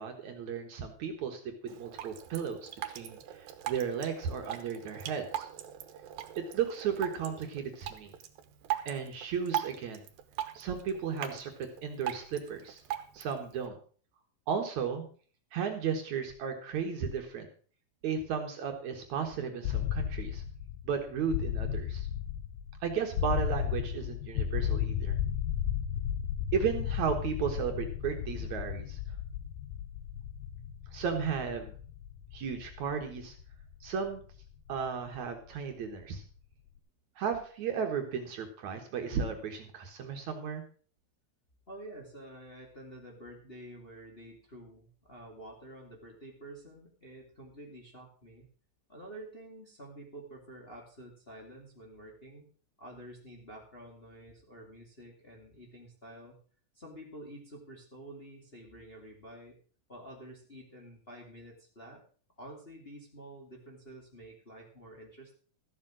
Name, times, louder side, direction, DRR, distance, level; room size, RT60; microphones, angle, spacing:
voice 1, 0.0-2.7 3.0-5.5 6.5-8.1 8.9-10.1 10.5-12.8 13.1-13.7 14.5-15.0 15.5-17.5 18.0-20.4 20.8-22.1 22.8-25.2 26.5-29.0 30.9-31.7 32.3-33.4 33.8-34.2 34.7-36.2 37.2-40.6, right 7 dB, 60° right, 4 dB, 2.5 m, -34 dB
Drip, 1.7-13.7, right 12 dB, 85° right, 2.9 m, -40 dB
sound 1, 19.6-35.5, left 9 dB, 85° left, 2.7 m, -35 dB
voice 2, 41.7-48.5 48.9-52.5 52.8-56.4 56.7-59.6 59.9-62.0 62.4-65.3, right 1 dB, 20° left, -1 dB, 2.1 m, -49 dB
14.0 x 7.5 x 6.2 m, 0.43 s
omnidirectional pair, 4.0 m